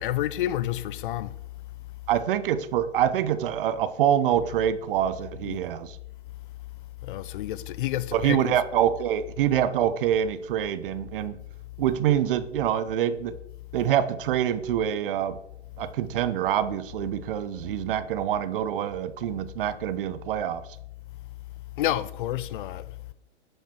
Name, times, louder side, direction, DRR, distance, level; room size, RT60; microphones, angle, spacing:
voice 1, 0.0-1.4 5.5-5.6 7.0-8.6 21.8-23.0, left 13 dB, 45° left, 0.6 m, -29 dB
voice 2, 2.1-6.0 8.1-11.4 11.8-13.4 13.7-15.4 15.8-20.6, right 10 dB, 50° right, 0.8 m, -25 dB
10.5 x 5.6 x 4.5 m
hypercardioid pair, 120°, 35 cm